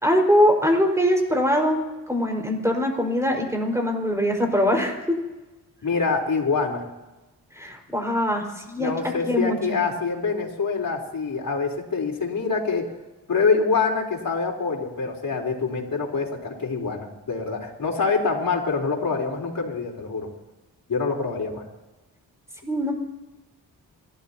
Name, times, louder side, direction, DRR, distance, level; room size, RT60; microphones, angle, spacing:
voice 1, 0.0-5.1 7.5-8.9 9.2-9.8 22.6-22.9, equal, 5° right, 1 dB, 5.0 m, -22 dB
voice 2, 5.8-6.9 8.8-12.9 13.3-20.3 20.9-21.7, left 4 dB, 55° left, -1 dB, 4.1 m, -25 dB
26.5 x 13.5 x 2.9 m, 1.1 s
cardioid pair, 50°, 40 cm